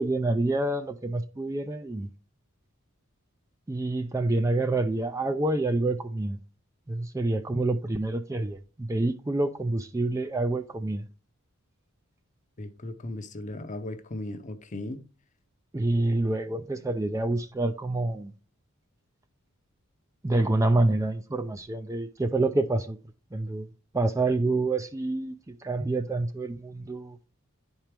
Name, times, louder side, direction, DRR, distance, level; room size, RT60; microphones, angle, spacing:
voice 1, 0.0-2.1 3.7-6.4 6.9-11.0 15.7-18.3 20.2-23.0 23.3-23.7 23.9-27.2, right 2 dB, 15° right, 0.3 m, -27 dB
voice 2, 12.6-15.0, left 1 dB, 35° left, 0.7 m, -37 dB
10.0 x 4.5 x 3.4 m
head